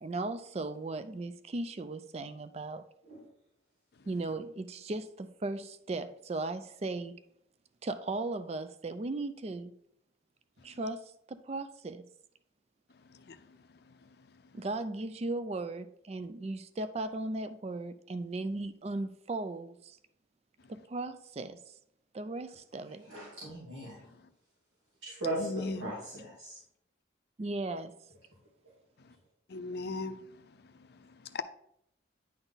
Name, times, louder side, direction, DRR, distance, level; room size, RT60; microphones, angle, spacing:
voice 1, 0.0-2.8 4.1-7.2 7.8-9.7 10.6-12.1 14.5-20.0 20.7-21.6 22.1-23.1 27.4-27.9, right 2 dB, 35° right, 0.4 m, -37 dB
voice 2, 23.1-24.0 25.0-26.6, right 1 dB, 75° right, 2.6 m, -38 dB
voice 3, 25.4-25.9 29.5-30.2 31.3-31.4, left 3 dB, 55° left, 0.5 m, -35 dB
9.9 x 4.0 x 4.0 m
head